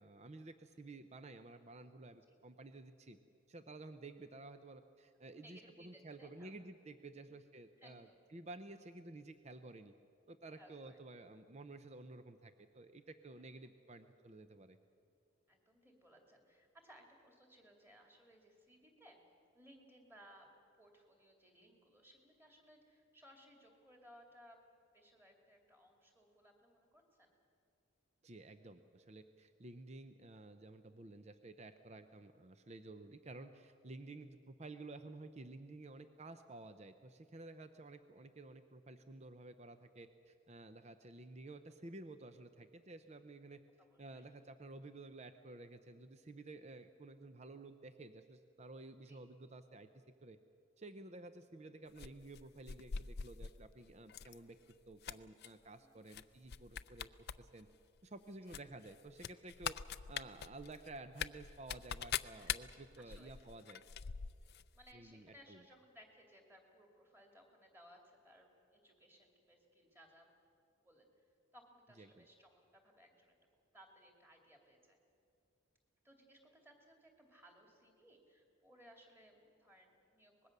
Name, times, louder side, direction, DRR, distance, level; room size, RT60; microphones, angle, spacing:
voice 1, 0.0-3.2 3.5-9.9 10.3-14.8 28.2-43.6 44.0-49.9 50.2-50.4 50.8-54.6 54.9-57.7 58.0-63.8 64.9-65.6 72.0-72.3, right 2 dB, 30° right, 9 dB, 0.6 m, -53 dB
voice 2, 5.3-6.6 7.8-8.2 10.6-11.0 15.5-19.2 19.5-20.5 20.8-24.6 24.9-27.4 35.8-36.1 41.1-41.3 43.8-44.3 49.0-49.2 55.8-56.0 58.4-58.6 62.3-62.6 63.0-63.4 64.7-70.3 70.8-71.1 71.5-73.3 73.7-75.0 76.0-80.5, equal, 10° right, 2 dB, 2.6 m, -63 dB
sound 1, 52.0-53.6 54.1-54.4 54.7-55.5 56.1-56.2 56.5-57.4 57.7-57.8 58.5-64.6 64.9-65.0, left 8 dB, 50° left, 0.4 m, -43 dB
25.0 x 20.5 x 6.7 m, 2.5 s
head